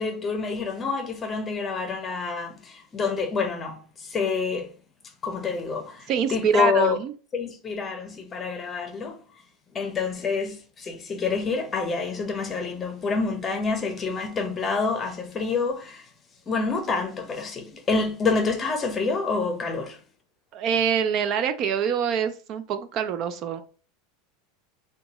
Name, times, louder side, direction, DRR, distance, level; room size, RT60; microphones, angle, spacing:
voice 1, 0.0-4.7 5.2-7.0 7.3-9.2 9.7-16.1 16.5-20.0, left 4 dB, 20° left, 0.7 m, -27 dB
voice 2, 6.1-7.1 20.5-23.6, right 7 dB, 40° right, 0.3 m, -25 dB
2.8 x 2.3 x 3.9 m
supercardioid pair, 145°, 0 cm